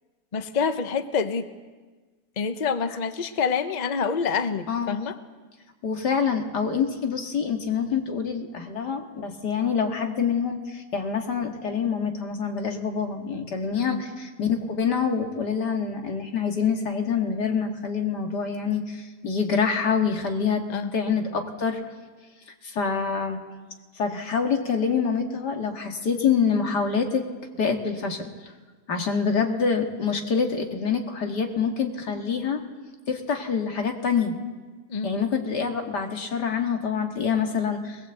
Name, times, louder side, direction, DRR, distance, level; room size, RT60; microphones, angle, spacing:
voice 1, 0.3-1.4 2.4-5.2 13.9-14.0 20.7-20.9 34.9-35.2, left 6 dB, 30° left, 10 dB, 0.9 m, -27 dB
voice 2, 4.7-5.0 5.8-20.6 20.9-21.8 22.6-23.4 24.0-27.2 27.6-28.3 28.9-32.6 33.1-34.4 35.0-38.1, left 6 dB, 85° left, 4 dB, 2.5 m, -26 dB
21.0 x 21.0 x 8.0 m, 1.4 s
omnidirectional pair, 1.7 m